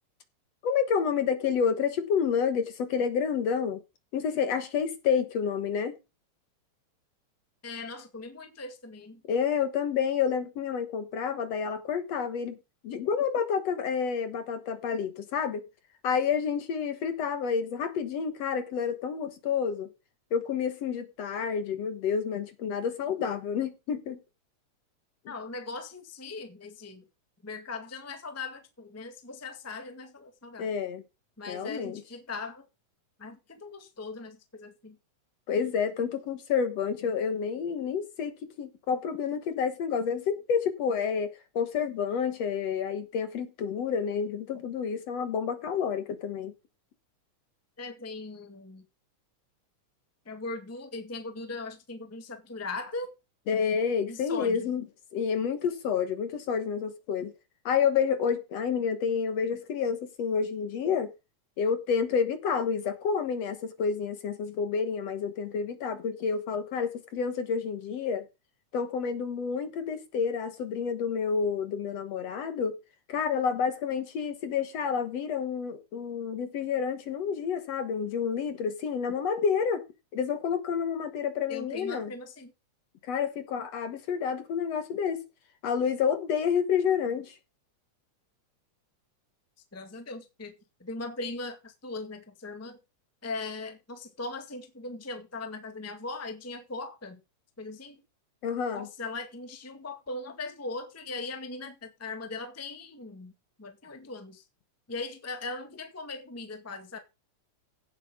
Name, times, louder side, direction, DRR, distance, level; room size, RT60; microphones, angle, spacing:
voice 1, 0.6-3.8 4.1-6.0 9.3-12.6 12.8-15.6 16.0-19.9 20.3-24.2 25.3-25.4 30.6-31.0 31.5-32.0 35.5-46.5 53.5-54.8 55.1-57.3 57.7-61.1 61.6-68.2 68.7-72.8 73.1-79.8 80.1-82.1 83.0-85.2 85.6-87.4 98.4-98.9, left 6 dB, 60° left, 2.3 m, -29 dB
voice 2, 7.6-9.2 25.3-27.0 27.4-30.7 31.4-32.6 33.2-35.0 47.8-48.8 50.2-53.1 54.1-54.7 81.5-82.5 89.7-90.5 90.8-92.8 93.2-97.2 97.6-98.0 98.7-103.3 103.6-104.4 104.9-107.0, left 3 dB, 5° left, 1.1 m, -39 dB
16.5 x 7.8 x 3.8 m
omnidirectional pair, 3.6 m